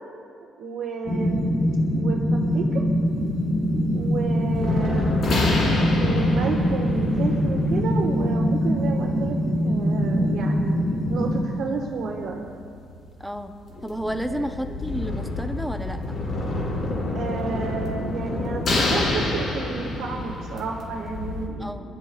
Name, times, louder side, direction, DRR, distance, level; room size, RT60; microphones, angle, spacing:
voice 1, 0.6-1.5 1.9-2.8 3.9-5.1 6.0-9.4 9.6-12.4 14.3-14.5 17.1-22.0, right 5 dB, 70° right, 0 dB, 1.3 m, -31 dB
sound 1, 1.0-11.4, equal, 60° left, 3.0 m, -23 dB
sound 2, 3.0-21.5, left 2 dB, 40° left, 3.3 m, -29 dB
voice 2, 13.2-13.6 13.8-16.2 21.6-21.9, equal, ahead, 6 dB, 0.6 m, -31 dB
28.0 x 12.5 x 2.3 m, 2.3 s
cardioid pair, 160°, 0 cm